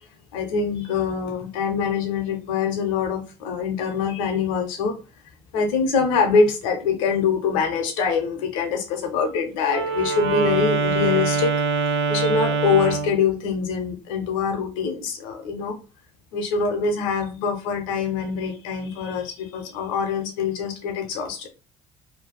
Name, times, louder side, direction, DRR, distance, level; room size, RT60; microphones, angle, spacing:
voice 1, 0.3-4.9 5.5-15.8 16.3-21.5, left 5 dB, 85° left, 5 dB, 0.7 m, -24 dB
Wind instrument woodwind instrument, 9.6-13.2, right 4 dB, 80° right, 0.8 m, -24 dB
3.3 x 2.3 x 2.2 m, 0.31 s
supercardioid pair, 80°, 17 cm